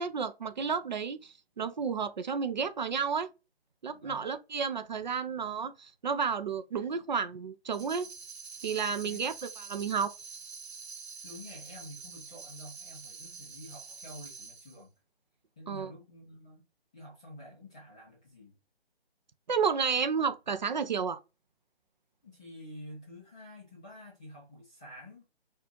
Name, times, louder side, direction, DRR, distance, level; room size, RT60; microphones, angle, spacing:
voice 1, 0.0-3.3 3.8-8.1 8.6-10.1 15.7-15.9 19.5-21.2, right 6 dB, 45° right, 0.5 m, -31 dB
voice 2, 3.9-4.3 9.0-9.3 11.1-14.9 15.6-18.5 22.2-25.2, left 1 dB, 5° left, 0.5 m, -49 dB
Tambourine, 7.7-14.8, right 5 dB, 90° right, 0.9 m, -46 dB
6.0 x 2.3 x 2.9 m
figure-of-eight pair, 150°, 32 cm